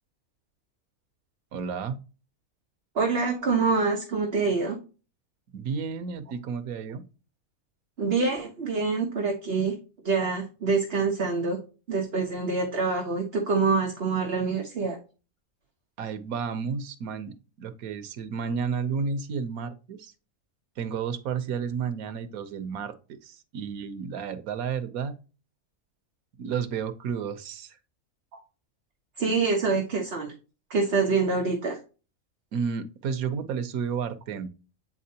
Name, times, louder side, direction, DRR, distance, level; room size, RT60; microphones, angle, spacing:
voice 1, 1.5-2.0 5.5-7.0 16.0-20.1 20.8-25.1 26.4-27.8 32.5-34.5, right 6 dB, 85° right, 11 dB, 1.2 m, -32 dB
voice 2, 2.9-4.8 8.0-9.7 10.0-11.6 11.9-15.0 28.3-28.4 29.2-30.3 30.7-31.8, right 4 dB, 50° right, 2 dB, 1.1 m, -26 dB
8.4 x 4.3 x 2.8 m, 0.34 s
omnidirectional pair, 1.5 m